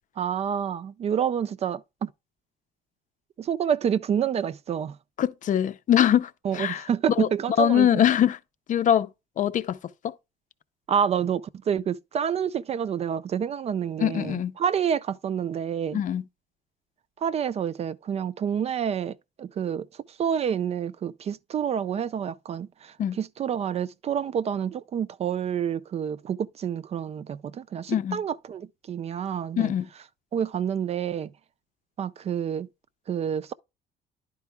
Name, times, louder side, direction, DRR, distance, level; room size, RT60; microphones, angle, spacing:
voice 1, 0.2-2.1 3.4-5.0 6.4-8.0 10.9-16.0 17.2-19.9 20.2-29.7 30.3-31.3 32.0-32.7 33.1-33.5, right 8 dB, 40° right, 0.4 m, -28 dB
voice 2, 5.2-6.8 7.2-7.3 7.6-8.4 8.7-9.1 9.4-9.8 14.0-14.5 15.9-16.2 23.0-23.2 27.9-28.2 29.6-29.9, left 10 dB, 50° left, 0.6 m, -23 dB
10.5 x 4.5 x 3.5 m
cardioid pair, 110°, 17 cm